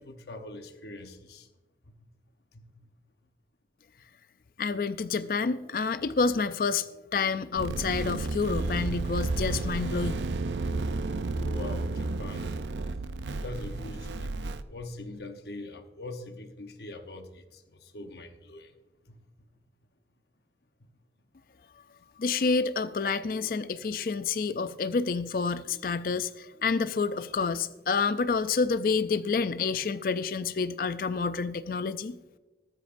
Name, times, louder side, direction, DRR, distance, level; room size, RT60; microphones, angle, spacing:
voice 1, 0.0-1.4 11.3-12.5 13.4-14.3 14.7-17.3 17.9-18.7, left 2 dB, 65° left, 0.9 m, -42 dB
voice 2, 4.6-6.9 7.1-10.2 22.2-32.2, left 4 dB, 50° left, 0.4 m, -28 dB
sound 1, 7.5-14.6, right 3 dB, 85° right, 0.5 m, -32 dB
14.0 x 13.5 x 2.6 m
head